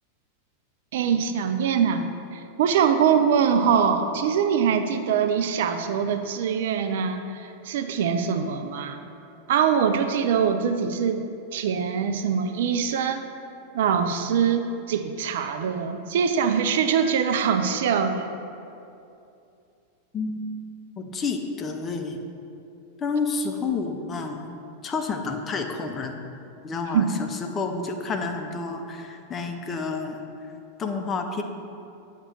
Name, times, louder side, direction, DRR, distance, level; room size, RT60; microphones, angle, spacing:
voice 1, 0.9-9.0 9.5-11.2 11.5-13.2 13.7-18.3 26.9-27.1, right 7 dB, 55° right, 7 dB, 0.3 m, -23 dB
voice 2, 20.1-20.5 21.0-22.2 23.0-24.5 24.8-26.2 26.6-30.2 30.8-31.4, left 4 dB, 25° left, 4 dB, 0.6 m, -29 dB
8.0 x 2.9 x 5.9 m, 2.6 s
figure-of-eight pair, 90°, 0 cm